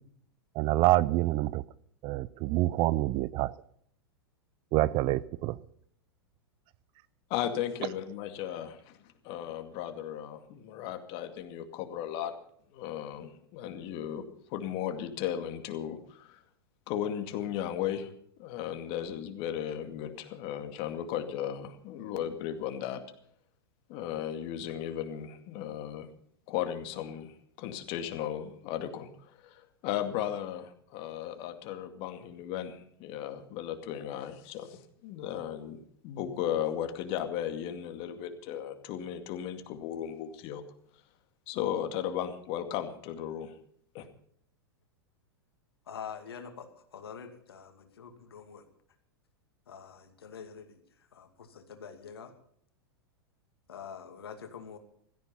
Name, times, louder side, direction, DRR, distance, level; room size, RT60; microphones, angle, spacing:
voice 1, 0.6-1.6 2.0-3.5 4.7-5.6, right 17 dB, 40° right, 0.5 m, -26 dB
voice 2, 7.3-9.0 9.2-12.3 12.7-14.2 14.5-16.4 16.9-18.1 18.4-23.0 23.9-26.1 26.5-35.8 36.0-40.6 41.5-43.5 43.9-44.1, left 10 dB, 45° left, 2.3 m, -36 dB
voice 3, 45.8-48.6 49.7-52.3 53.7-54.8, left 7 dB, 70° left, 2.5 m, -46 dB
16.5 x 14.0 x 5.6 m
figure-of-eight pair, 100°, 13 cm